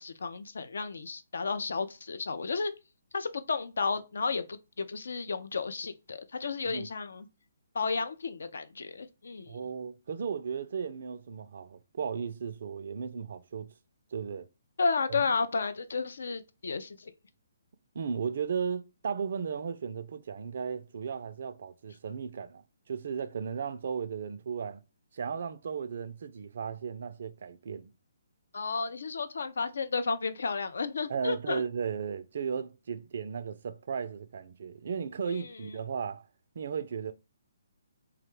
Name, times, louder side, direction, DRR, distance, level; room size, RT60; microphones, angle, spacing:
voice 1, 0.0-2.7 3.1-7.3 7.7-9.6 14.8-17.1 28.5-31.6 35.3-35.7, left 4 dB, 70° left, 0.3 m, -32 dB
voice 2, 9.5-13.7 14.1-14.5 15.1-15.2 17.9-24.8 25.1-27.9 31.1-36.2 36.6-37.1, right 6 dB, 55° right, 0.3 m, -35 dB
2.4 x 2.1 x 3.0 m
figure-of-eight pair, 140°, 0 cm